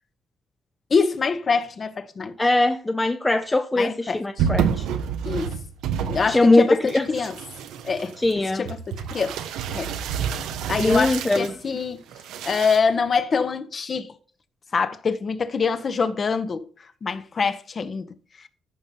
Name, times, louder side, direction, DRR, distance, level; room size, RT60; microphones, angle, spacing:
voice 1, 0.9-2.3 3.8-4.5 5.2-5.5 6.0-7.3 7.8-8.1 8.5-9.4 9.7-9.9 10.7-12.0 12.4-14.1 14.7-16.6 17.0-18.1, left 5 dB, 40° left, 1.0 m, -25 dB
voice 2, 2.4-4.9 6.3-7.1 8.2-8.6 10.8-11.6, left 2 dB, 15° left, 0.6 m, -21 dB
sound 1, 4.4-6.6 6.9-11.5 12.1-12.8, right 8 dB, 90° right, 0.8 m, -28 dB
14.5 x 5.3 x 2.9 m
cardioid pair, 90°, 0 cm